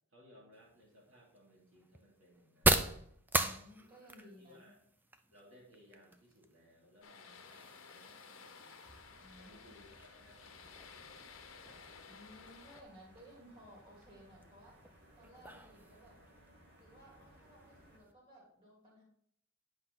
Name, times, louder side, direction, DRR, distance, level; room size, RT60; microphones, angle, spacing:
voice 1, 0.1-3.1 3.8-3.9 4.2-4.8 5.3-8.8 9.4-11.1, equal, 65° right, -4 dB, 3.0 m, -63 dB
sound 1, 0.5-18.1, right 2 dB, 10° right, 0.4 m, -41 dB
voice 2, 3.3-4.7 9.1-9.9 12.1-14.8 15.1-16.2 16.8-19.0, equal, 25° right, -5 dB, 3.2 m, -58 dB
sound 2, 7.0-12.8, left 5 dB, 65° left, 1.0 m, -55 dB
sound 3, 8.8-18.0, equal, 50° right, 2.3 m, -62 dB
9.8 x 5.6 x 4.0 m, 0.68 s
head